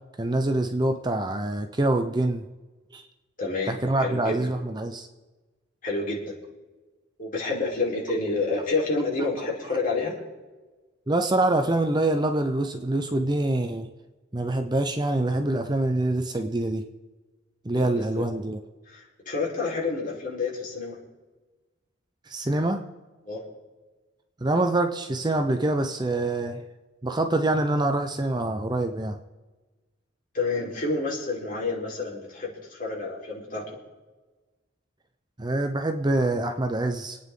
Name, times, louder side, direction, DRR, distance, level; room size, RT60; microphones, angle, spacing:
voice 1, 0.2-2.5 2.9-3.1 3.7-5.1 11.1-13.9 14.3-16.9 17.6-18.6 22.3-22.8 24.4-26.6 27.0-29.2 35.4-37.2, right 2 dB, 20° right, 6 dB, 0.7 m, -25 dB
voice 2, 3.4-4.5 5.8-6.3 7.2-10.2 17.8-18.2 18.9-21.0 23.3-23.4 30.3-33.8, left 3 dB, 45° left, -3 dB, 4.2 m, -29 dB
27.0 x 9.4 x 3.8 m, 1.2 s
head